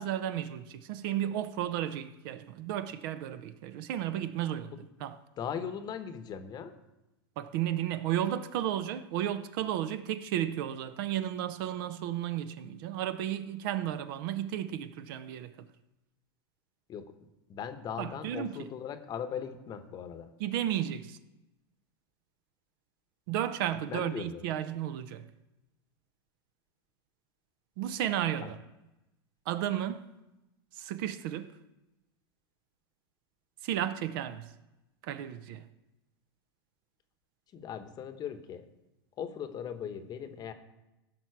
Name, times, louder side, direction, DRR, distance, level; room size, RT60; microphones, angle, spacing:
voice 1, 0.0-4.7 5.0-5.2 7.4-15.5 18.0-18.7 20.4-21.2 23.3-25.2 27.8-28.6 29.5-30.1 30.8-31.5 33.6-34.5 35.0-35.6, right 11 dB, 55° right, 0.7 m, -33 dB
voice 2, 5.4-6.7 16.9-17.1 17.5-20.3 23.9-24.4 28.4-28.5 37.5-38.7 39.2-40.5, left 8 dB, 30° left, 1.0 m, -39 dB
16.0 x 6.0 x 4.6 m
hypercardioid pair, 120°, 13 cm